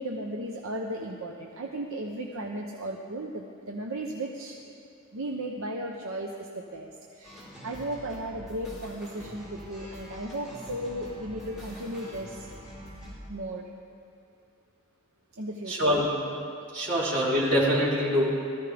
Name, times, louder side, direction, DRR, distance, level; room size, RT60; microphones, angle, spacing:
voice 1, 0.0-4.6 5.1-12.5 13.3-13.7 15.3-16.0, right 1 dB, 75° right, 0 dB, 0.9 m, -35 dB
sound 1, 7.2-13.1, equal, ahead, 4.0 m, -44 dB
voice 2, 15.7-16.1 16.7-18.2, equal, 50° right, -7 dB, 3.8 m, -24 dB
19.5 x 14.0 x 3.5 m, 2.5 s
head